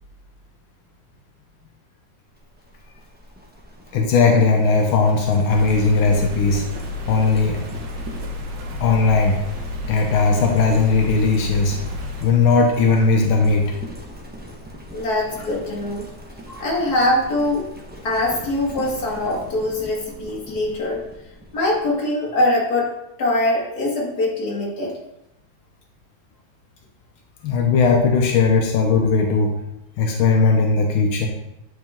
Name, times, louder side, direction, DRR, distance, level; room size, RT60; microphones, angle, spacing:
Livestock farm animals working animals, 2.3-22.0, equal, 15° right, 0.4 m, -40 dB
voice 1, 3.9-6.6 7.1-7.6 8.8-9.4 9.9-11.8 12.2-13.7 27.4-29.5 30.0-31.3, left 4 dB, 85° left, 2 dB, 1.6 m, -18 dB
sound 1, 5.5-12.3, left 2 dB, 85° right, 1.8 m, -31 dB
voice 2, 14.9-16.0 16.5-17.7 18.0-21.0 21.5-22.9 23.2-24.9, left 1 dB, 50° left, -4 dB, 2.3 m, -22 dB
9.3 x 4.2 x 3.6 m, 0.86 s
omnidirectional pair, 2.2 m